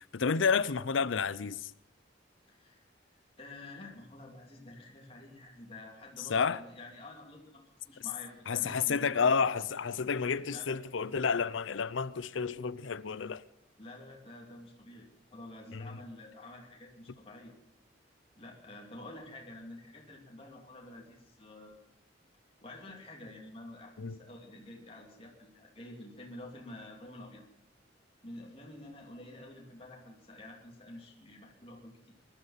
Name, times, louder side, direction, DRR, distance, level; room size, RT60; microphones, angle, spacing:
voice 1, 0.0-1.7 6.3-6.6 8.5-13.4 15.7-16.0 24.0-24.2, left 5 dB, 85° left, 0.6 m, -30 dB
voice 2, 2.5-2.9 3.4-9.5 10.5-10.8 13.8-17.5 18.4-21.8 22.6-27.4 28.2-32.1, left 1 dB, 30° left, 2.8 m, -49 dB
21.0 x 11.5 x 5.8 m
head